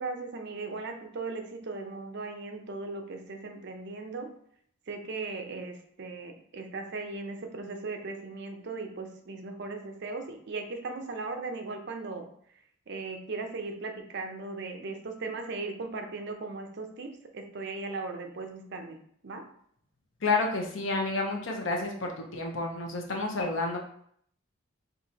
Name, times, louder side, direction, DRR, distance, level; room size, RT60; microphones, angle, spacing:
voice 1, 0.0-4.3 4.9-12.3 12.9-19.0 19.2-19.5, right 3 dB, 60° right, 5 dB, 0.6 m, -38 dB
voice 2, 20.2-23.8, left 3 dB, 75° left, 2 dB, 0.8 m, -30 dB
4.6 x 2.7 x 2.8 m, 0.65 s
head